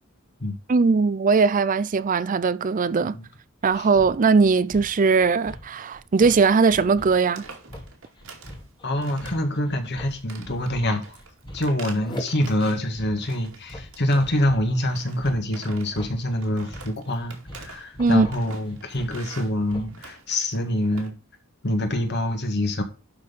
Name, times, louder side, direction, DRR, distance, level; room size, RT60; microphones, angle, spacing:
voice 1, 0.7-3.2 3.6-7.4 18.0-18.3, right 4 dB, 40° right, 0.4 m, -20 dB
sound 1, 3.7-20.1, equal, 20° left, 1.9 m, -42 dB
sound 2, 6.3-6.5 6.8-6.9 7.2-8.6 9.0-9.6 9.8-12.9 13.2-14.5 14.8-21.1, right 4 dB, 80° right, 2.4 m, -45 dB
voice 2, 8.8-11.2 11.5-21.1 21.6-22.8, left 1 dB, 55° left, 1.9 m, -25 dB
11.5 x 4.4 x 5.2 m
head